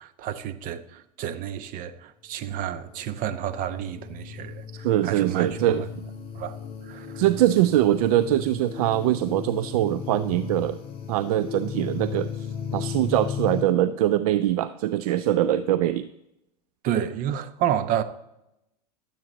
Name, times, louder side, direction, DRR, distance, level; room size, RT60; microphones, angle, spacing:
voice 1, 0.0-5.8 6.3-6.5 6.9-7.2 16.8-18.0, right 10 dB, 40° right, 0.9 m, -30 dB
sound 1, 2.6-13.6, left 7 dB, 25° left, 2.6 m, -36 dB
voice 2, 4.8-5.9 7.2-10.8 11.1-16.1, right 13 dB, 60° right, 0.5 m, -23 dB
12.5 x 7.8 x 3.9 m
hypercardioid pair, 95°, 21 cm